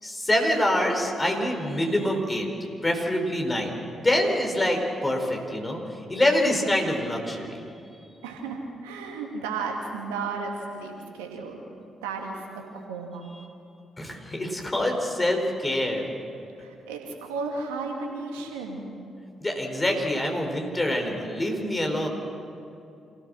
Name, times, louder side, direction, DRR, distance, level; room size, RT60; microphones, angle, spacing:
voice 1, 0.0-2.5 2.8-7.6 14.0-16.1 19.4-22.1, left 1 dB, 25° left, 2 dB, 4.7 m, -25 dB
voice 2, 8.2-11.6 12.0-13.3 16.6-18.9, right 4 dB, 85° right, 1 dB, 2.6 m, -34 dB
27.5 x 16.5 x 6.5 m, 2.6 s
hypercardioid pair, 40°, 0 cm